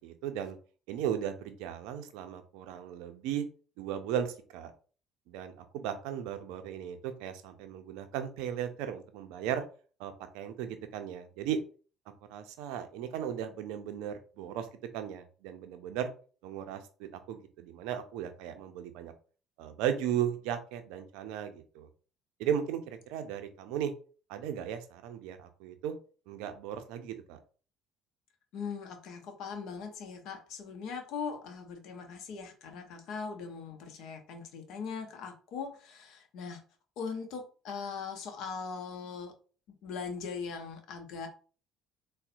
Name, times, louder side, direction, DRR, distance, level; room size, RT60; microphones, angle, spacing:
voice 1, 0.0-0.6 0.9-3.4 3.8-4.7 5.3-9.6 10.0-11.6 12.3-14.7 14.9-16.1 16.4-19.1 19.6-21.9 22.4-23.9 24.3-25.9 26.3-27.4, right 9 dB, 70° right, 8 dB, 0.4 m, -36 dB
voice 2, 28.5-36.6 37.0-39.3 39.8-41.3, left 5 dB, 65° left, 5 dB, 0.6 m, -40 dB
3.9 x 2.0 x 2.5 m, 0.39 s
hypercardioid pair, 55°, 0 cm